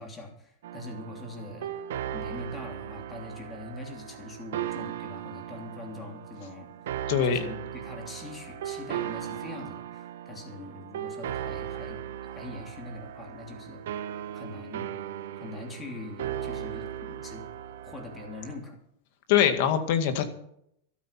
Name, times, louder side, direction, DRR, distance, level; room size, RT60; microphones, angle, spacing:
voice 1, 0.0-1.7 2.1-6.7 7.2-13.8 14.3-14.9 15.3-17.5 17.8-18.8 20.2-20.3, left 2 dB, 15° left, 2 dB, 3.1 m, -42 dB
sound 1, 0.6-18.6, right 10 dB, 85° right, 1.4 m, -37 dB
voice 2, 7.1-7.4 19.3-20.2, left 9 dB, 50° left, 8 dB, 2.1 m, -23 dB
13.5 x 12.5 x 6.0 m, 0.73 s
supercardioid pair, 170°, 0 cm